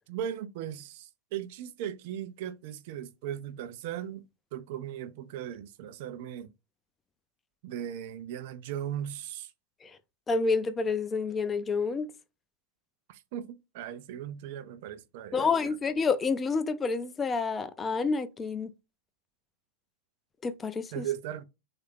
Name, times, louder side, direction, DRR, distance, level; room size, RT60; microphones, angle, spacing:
voice 1, 0.1-4.2 4.5-6.5 7.6-9.5 13.1-15.8 20.9-21.4, right 10 dB, 60° right, 0.4 m, -38 dB
voice 2, 10.3-12.1 15.3-18.7 20.4-21.1, left 4 dB, 20° left, 0.4 m, -28 dB
3.1 x 2.4 x 3.2 m
hypercardioid pair, 105°, 0 cm